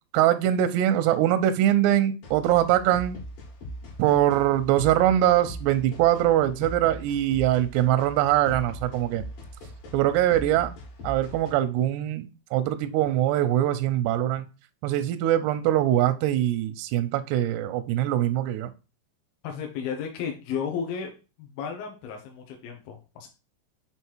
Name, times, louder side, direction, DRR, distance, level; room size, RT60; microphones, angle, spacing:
voice 1, 0.1-3.2 4.0-9.2 9.9-10.7 11.0-14.5 14.8-18.7, right 12 dB, 85° right, 2.4 m, -23 dB
sound 1, 2.2-11.5, equal, 55° left, 3.4 m, -40 dB
voice 2, 19.4-21.1 21.4-23.3, left 7 dB, 75° left, 2.2 m, -33 dB
7.3 x 3.4 x 4.5 m
omnidirectional pair, 5.3 m